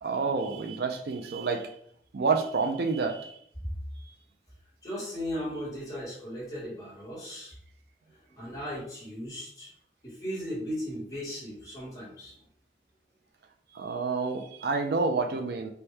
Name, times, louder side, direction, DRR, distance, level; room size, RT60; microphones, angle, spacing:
voice 1, 0.0-1.7 2.1-3.4 4.0-4.1 13.7-15.7, right 4 dB, 65° right, 4 dB, 0.4 m, -29 dB
voice 2, 4.8-7.5 8.4-9.7 10.0-12.3, equal, 20° left, -6 dB, 1.4 m, -37 dB
4.4 x 2.2 x 3.2 m, 0.64 s
head